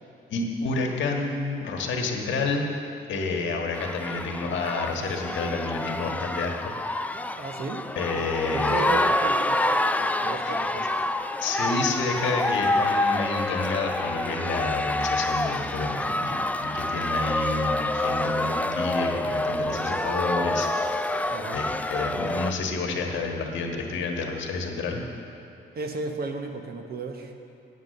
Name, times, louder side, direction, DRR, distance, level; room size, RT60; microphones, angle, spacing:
voice 1, 0.3-2.6 3.1-6.7 8.0-8.8 10.5-10.6 11.4-20.7 21.1-25.0, left 3 dB, 70° left, 2 dB, 1.4 m, -29 dB
sound 1, 3.7-22.5, left 2 dB, 10° left, 0.4 m, -27 dB
voice 2, 7.4-7.9 8.1-8.2 8.5-9.7 10.0-10.9 21.3-21.6 25.7-27.3, right 4 dB, 50° right, 4 dB, 1.1 m, -34 dB
Telephone, 19.4-21.4, right 2 dB, 25° right, 0.7 m, -42 dB
9.4 x 8.1 x 6.6 m, 2.8 s
cardioid pair, 90°, 20 cm